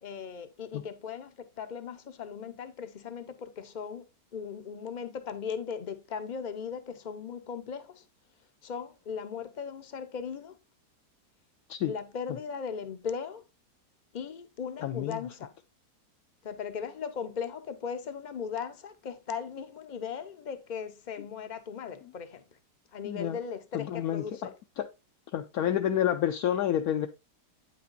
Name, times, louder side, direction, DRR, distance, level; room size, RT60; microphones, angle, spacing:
voice 1, 0.0-4.0 4.3-8.0 8.6-10.6 11.9-13.4 14.1-15.5 16.4-22.4 22.9-24.4, left 6 dB, 45° left, 0.5 m, -38 dB
voice 2, 14.8-15.2 23.0-23.4 23.7-24.9 25.3-27.1, left 10 dB, 70° left, 1.0 m, -29 dB
9.0 x 5.9 x 2.5 m
omnidirectional pair, 1.8 m